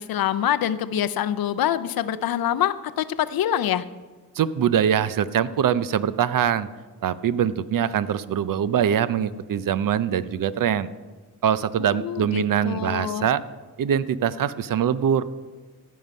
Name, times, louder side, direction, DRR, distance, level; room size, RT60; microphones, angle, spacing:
voice 1, 0.0-3.8 11.8-13.3, left 10 dB, 70° left, 13 dB, 0.6 m, -25 dB
voice 2, 4.4-6.7 7.0-10.9 11.4-13.4 13.8-15.2, right 9 dB, 60° right, 15 dB, 0.6 m, -23 dB
15.0 x 5.6 x 5.2 m, 1.3 s
cardioid pair, 60°, 38 cm